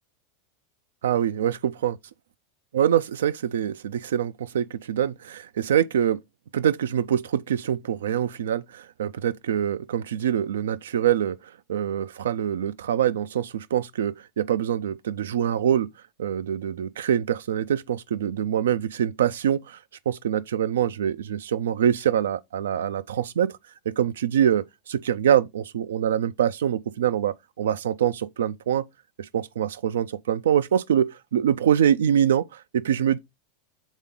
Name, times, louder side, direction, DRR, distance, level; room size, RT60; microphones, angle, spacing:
voice 1, 1.0-1.5 1.8-1.9 2.7-6.2 6.5-11.4 11.7-15.9 16.2-19.8 20.1-23.5 23.9-28.9 29.2-33.2, right 9 dB, 80° right, 0.4 m, -24 dB
7.2 x 3.6 x 3.7 m
hypercardioid pair, 95°, 0 cm